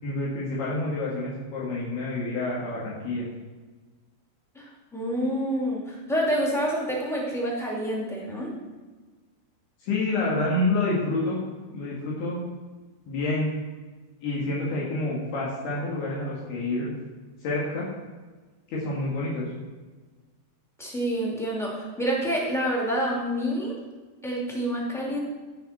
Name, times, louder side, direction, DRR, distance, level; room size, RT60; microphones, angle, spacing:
voice 1, 0.0-3.3 9.8-11.4 11.7-12.4 13.1-13.5 14.2-16.9 17.4-17.9 18.7-19.5, left 2 dB, 70° left, -6 dB, 3.9 m, -28 dB
voice 2, 4.5-8.5 20.8-23.7 24.2-25.2, equal, ahead, -4 dB, 0.8 m, -28 dB
17.5 x 6.5 x 4.3 m, 1.3 s
omnidirectional pair, 4.9 m